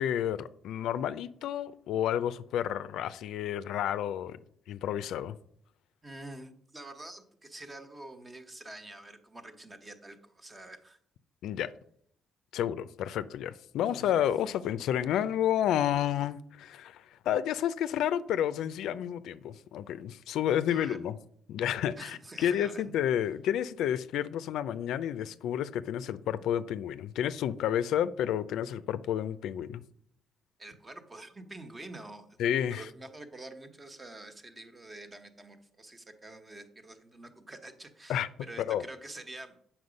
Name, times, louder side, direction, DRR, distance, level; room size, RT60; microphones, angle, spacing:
voice 1, 0.0-4.4 4.7-5.4 11.4-11.7 12.5-21.2 21.5-29.8 32.4-32.9 38.1-38.3 38.6-38.8, left 10 dB, 85° left, 0.4 m, -30 dB
voice 2, 6.0-11.0 13.9-14.1 20.7-21.1 22.0-22.9 30.6-32.4 32.6-39.5, right 2 dB, 25° right, 1.2 m, -47 dB
7.9 x 6.0 x 5.2 m
cardioid pair, 90°, 0 cm